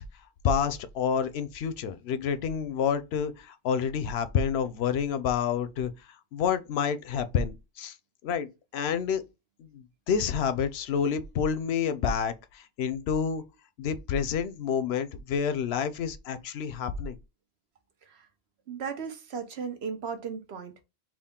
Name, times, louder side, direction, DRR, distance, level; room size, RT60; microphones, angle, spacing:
voice 1, 0.4-5.9 6.3-8.0 8.2-9.2 9.6-13.4 13.8-17.2, left 7 dB, 90° left, 0.8 m, -29 dB
voice 2, 18.7-20.8, right 6 dB, 90° right, 1.1 m, -36 dB
3.7 x 2.4 x 3.6 m
omnidirectional pair, 1.0 m